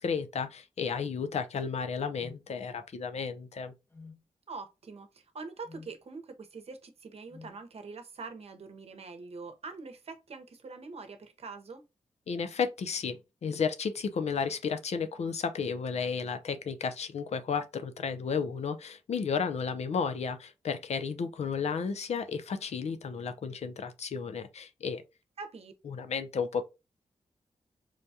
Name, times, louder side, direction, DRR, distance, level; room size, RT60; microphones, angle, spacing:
voice 1, 0.0-3.7 12.3-25.0 25.8-26.6, left 6 dB, 70° left, 0.5 m, -33 dB
sound 1, 2.2-2.5 3.9-4.2 5.6-6.0 7.3-7.6, left 4 dB, 20° left, 0.6 m, -49 dB
voice 2, 4.5-11.8 25.4-25.7, right 4 dB, 60° right, 0.8 m, -44 dB
4.7 x 2.3 x 2.7 m
cardioid pair, 70°, 12 cm